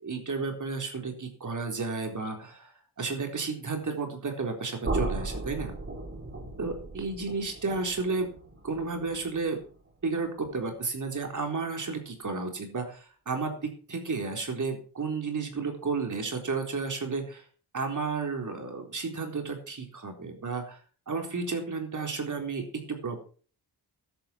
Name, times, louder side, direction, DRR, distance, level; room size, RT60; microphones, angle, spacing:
voice 1, 0.0-2.7 3.0-5.7 6.6-8.3 8.6-9.6 10.0-17.4 17.7-20.8 21.1-23.2, right 4 dB, 50° right, 4 dB, 4.0 m, -32 dB
sound 1, 4.8-10.7, right 2 dB, 30° right, 4.1 m, -37 dB
13.5 x 11.5 x 4.5 m, 0.41 s
wide cardioid pair, 120°, 40 cm